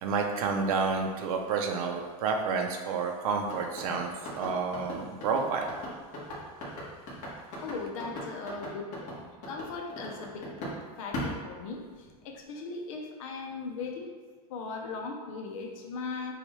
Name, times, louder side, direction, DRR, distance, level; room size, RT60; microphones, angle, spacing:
voice 1, 0.0-5.7, right 5 dB, 65° right, 3 dB, 0.7 m, -30 dB
sound 1, 3.5-10.8 11.1-12.2, left 1 dB, 40° left, 1.5 m, -38 dB
voice 2, 7.6-10.7 11.0-14.1 14.5-16.4, left 4 dB, 60° left, 1 dB, 0.8 m, -38 dB
6.6 x 2.5 x 3.1 m, 1.4 s
supercardioid pair, 170°, 19 cm